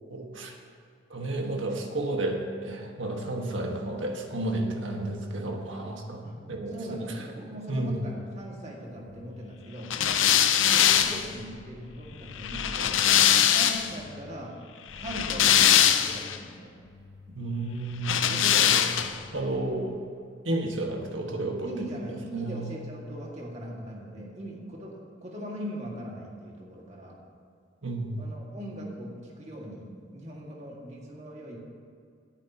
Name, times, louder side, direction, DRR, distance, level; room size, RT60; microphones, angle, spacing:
voice 1, 0.1-0.5 1.1-7.1 7.7-7.9 17.3-18.6 19.3-20.0 20.4-21.7 22.3-22.8 27.8-28.3, right 2 dB, 90° right, 2 dB, 1.5 m, -32 dB
voice 2, 6.7-10.3 10.7-14.6 15.0-16.7 18.3-19.3 21.6-27.2 28.2-31.6, equal, 35° right, -2 dB, 2.0 m, -40 dB
sound 1, 9.9-14.0 14.9-16.4 18.0-19.3, left 10 dB, 85° left, 0.6 m, -22 dB
18.0 x 10.5 x 2.9 m, 2.3 s
head